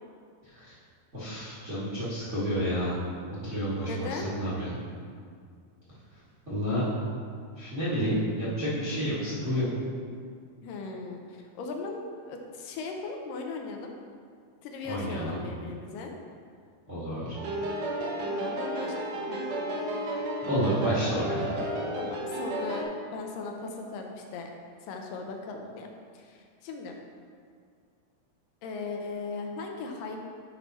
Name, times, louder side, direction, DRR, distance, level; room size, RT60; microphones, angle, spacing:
voice 1, 1.1-3.0 3.3-4.7 6.5-6.9 7.6-9.7 14.8-15.4 16.9-17.4 20.5-21.4, equal, 30° right, -10 dB, 1.2 m, -30 dB
voice 2, 3.8-4.3 10.6-13.9 14.6-16.2 18.2-19.4 22.0-24.5 24.9-25.9 26.1-27.0 28.6-30.2, left 4 dB, 75° left, 2 dB, 2.2 m, -38 dB
sound 1, 17.3-22.8, right 1 dB, 75° right, 3.0 m, -32 dB
9.7 x 5.7 x 4.2 m, 2.1 s
omnidirectional pair, 4.4 m